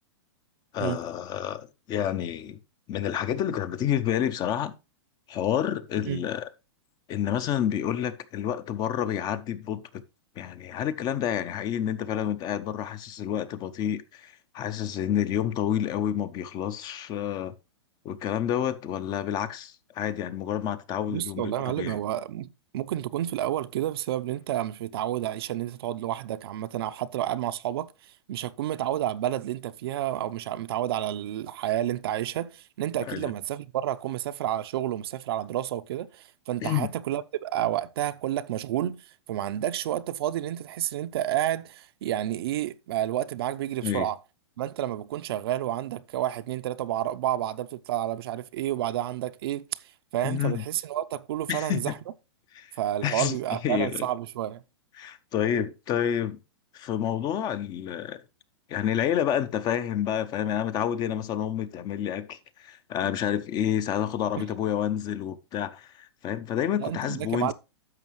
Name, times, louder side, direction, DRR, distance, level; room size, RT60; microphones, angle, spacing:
voice 1, 0.7-2.6 2.9-4.7 5.3-6.5 7.1-10.0 10.4-17.5 18.0-22.0 33.1-33.3 36.6-36.9 43.8-44.1 50.2-50.6 51.5-51.9 52.5-52.7 53.0-53.4 53.6-54.1 55.0-56.4 56.7-58.2 58.7-67.5, left 10 dB, 30° left, 0.7 m, -29 dB
voice 2, 21.1-44.2 44.6-51.9 52.8-54.6 64.4-64.5 66.8-67.5, right 12 dB, 60° right, 0.6 m, -30 dB
11.0 x 6.7 x 3.1 m
hypercardioid pair, 135°, 14 cm